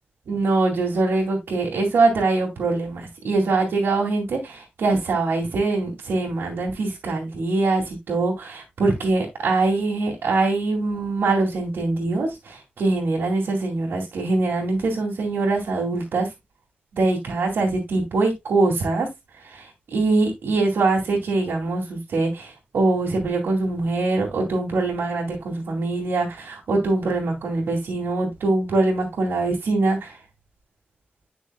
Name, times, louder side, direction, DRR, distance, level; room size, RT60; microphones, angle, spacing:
voice 1, 0.3-16.3 16.9-19.1 19.4-30.2, right 3 dB, 85° right, 2.4 m, -23 dB
10.5 x 6.0 x 2.2 m
cardioid pair, 80°, 4 cm